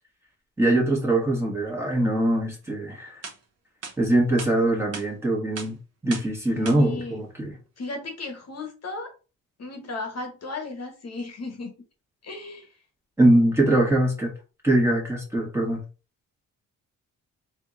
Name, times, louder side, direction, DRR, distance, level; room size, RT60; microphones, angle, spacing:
voice 1, 0.6-3.2 4.0-5.8 6.0-7.6 13.2-14.3 14.6-15.8, right 1 dB, 10° right, -2 dB, 1.4 m, -22 dB
sound 1, 2.8-2.9 3.2-3.4 3.8-4.0 4.4-4.5 4.9-5.1 5.6-5.7 6.1-6.3 6.7-6.8, right 5 dB, 45° right, 1.2 m, -36 dB
voice 2, 6.5-7.2 7.8-9.1 9.6-11.7 12.2-12.7, left 3 dB, 50° left, 4 dB, 1.2 m, -35 dB
3.4 x 3.0 x 3.8 m, 0.33 s
cardioid pair, 140°, 34 cm